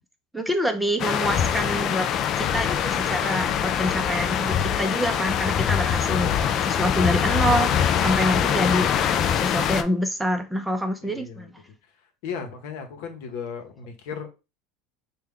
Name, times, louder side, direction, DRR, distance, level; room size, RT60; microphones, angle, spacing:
voice 1, 0.3-2.1 2.3-11.5, equal, 5° right, 0.6 m, -27 dB
sound 1, 1.0-9.8, left 8 dB, 45° left, 0.4 m, -23 dB
voice 2, 6.0-6.5 11.0-11.5 12.2-14.3, left 6 dB, 70° left, 0.9 m, -36 dB
3.3 x 2.3 x 3.6 m
supercardioid pair, 110°, 0 cm